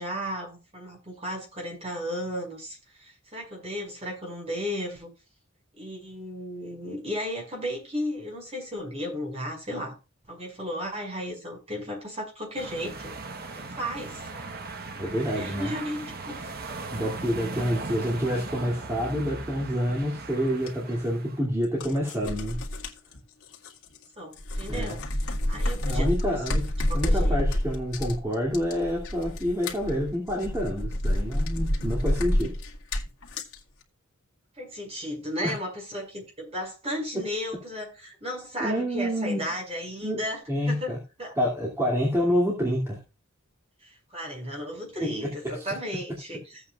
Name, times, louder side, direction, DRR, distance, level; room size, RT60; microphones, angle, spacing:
voice 1, 0.0-5.1 5.8-10.0 10.3-13.1 13.6-14.3 15.3-16.5 24.2-25.0 25.5-26.4 26.9-27.4 34.6-40.4 40.7-41.4 43.8-46.6, equal, 30° right, 5.6 m, -34 dB
sound 1, 12.6-21.4, right 3 dB, 45° right, 1.2 m, -38 dB
voice 2, 15.0-15.7 16.9-22.6 24.7-25.0 25.8-26.6 26.9-32.5 35.4-35.5 38.6-39.4 40.0-40.2 40.5-41.0 41.4-43.0 45.6-45.7, equal, 15° right, 2.6 m, -28 dB
sound 2, 20.7-20.8 21.6-24.1 24.3-33.6, left 1 dB, 75° left, 1.9 m, -28 dB
15.5 x 8.4 x 2.5 m
head